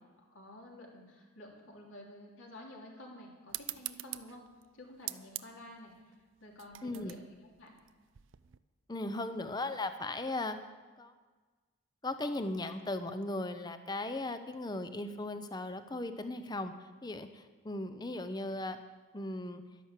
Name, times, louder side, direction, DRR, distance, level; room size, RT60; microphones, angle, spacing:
voice 1, 0.2-4.4 4.7-5.9 6.4-7.3 7.6-7.7, left 1 dB, 65° left, -1 dB, 3.1 m, -51 dB
sound 1, 3.5-8.6, right 16 dB, 65° right, 0.5 m, -45 dB
voice 2, 6.8-7.2 8.9-10.6 11.0-11.1 12.0-16.7 17.0-18.8 19.1-19.6, left 2 dB, 20° left, 9 dB, 0.7 m, -37 dB
12.0 x 11.0 x 7.5 m, 1.4 s
head